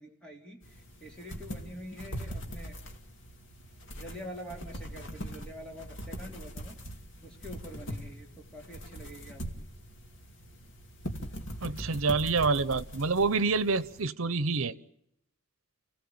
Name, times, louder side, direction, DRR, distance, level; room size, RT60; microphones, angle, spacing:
voice 1, 0.0-2.8 3.9-6.8 7.2-9.4, equal, 5° left, 3.4 m, -46 dB
sound 1, 0.6-14.0, equal, 65° left, 2.6 m, -42 dB
voice 2, 11.6-14.8, right 4 dB, 90° right, 0.9 m, -27 dB
29.0 x 17.0 x 8.7 m
head